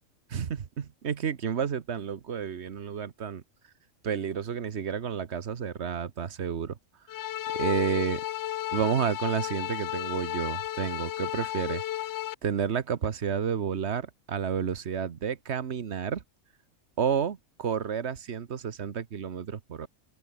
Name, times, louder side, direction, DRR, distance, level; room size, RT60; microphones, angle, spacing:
voice 1, 0.3-3.4 4.0-6.8 7.5-8.2 8.7-11.8 12.4-16.2 17.0-19.9, right 7 dB, 55° right, 1.4 m, -30 dB
sound 1, 7.1-12.3, left 13 dB, 65° left, 0.8 m, -33 dB
open air
omnidirectional pair, 1.4 m